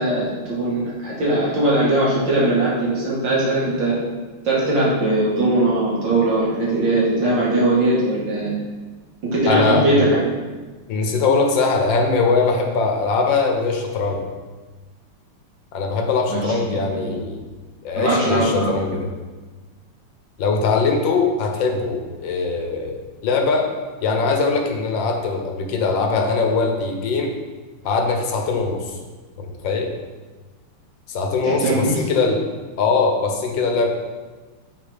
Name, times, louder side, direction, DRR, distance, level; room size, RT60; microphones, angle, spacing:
voice 1, 0.0-4.0 4.4-8.5 9.3-10.5 16.3-16.5 17.0-17.1 18.0-18.7 31.4-32.0, right 1 dB, 60° right, -7 dB, 2.2 m, -20 dB
voice 2, 9.5-10.1 10.9-14.2 15.7-17.4 17.8-19.1 20.4-23.7 24.0-27.3 27.8-28.9 29.4-29.9 31.1-32.4 32.8-33.9, left 4 dB, 70° left, 2 dB, 1.5 m, -21 dB
7.4 x 3.3 x 5.0 m, 1.3 s
omnidirectional pair, 2.3 m